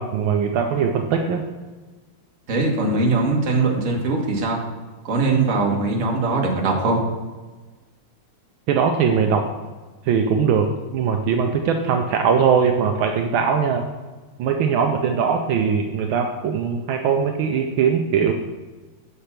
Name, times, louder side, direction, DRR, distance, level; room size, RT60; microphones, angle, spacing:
voice 1, 0.0-1.4 8.7-9.5 10.1-13.9 14.4-18.3, right 6 dB, 75° right, 4 dB, 1.4 m, -20 dB
voice 2, 2.5-4.6 5.0-7.0, right 3 dB, 40° right, 0 dB, 1.5 m, -21 dB
6.6 x 5.5 x 5.8 m, 1.3 s
omnidirectional pair, 2.4 m